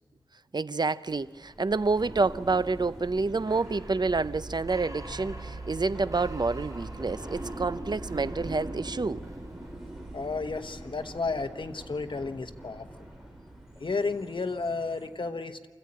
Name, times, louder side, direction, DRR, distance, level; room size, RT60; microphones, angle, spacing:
voice 1, 0.5-9.2, right 3 dB, 55° right, 0.6 m, -28 dB
sound 1, 1.1-15.1, equal, 5° right, 6.3 m, -51 dB
sound 2, 1.6-14.3, right 2 dB, 40° right, 4.6 m, -41 dB
voice 2, 10.1-12.9 13.8-15.7, left 4 dB, 70° left, 1.0 m, -32 dB
27.5 x 14.5 x 8.7 m
wide cardioid pair, 60°, 9 cm